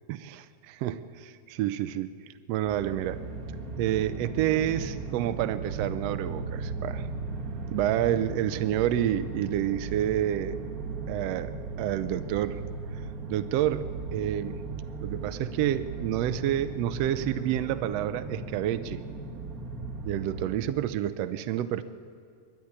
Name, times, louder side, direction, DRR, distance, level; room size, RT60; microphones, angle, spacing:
voice 1, 0.1-2.1 2.5-3.2 3.8-7.1 7.7-10.6 11.1-12.6 13.3-13.9 14.1-14.6 15.0-19.0 20.0-21.8, right 12 dB, 75° right, 11 dB, 1.6 m, -29 dB
sound 1, 2.7-20.6, right 3 dB, 40° right, 1.3 m, -37 dB
22.0 x 13.5 x 9.7 m, 2.2 s
omnidirectional pair, 3.4 m